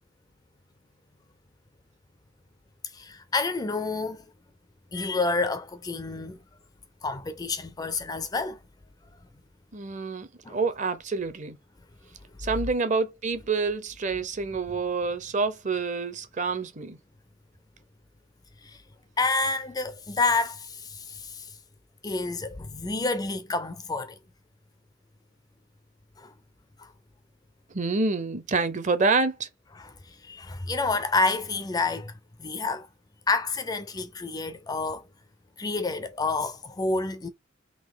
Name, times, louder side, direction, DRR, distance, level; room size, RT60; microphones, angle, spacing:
voice 1, 2.9-4.2 4.9-6.4 7.0-8.6 10.4-10.6 18.6-18.8 19.2-21.5 22.0-24.2 26.2-26.3 26.8-26.9 29.8-32.9 33.3-35.0 35.6-37.3, left 3 dB, 20° left, 0.4 m, -29 dB
voice 2, 9.7-11.6 12.4-17.0 27.7-29.5, right 4 dB, 40° right, 0.7 m, -27 dB
3.8 x 2.8 x 3.6 m
head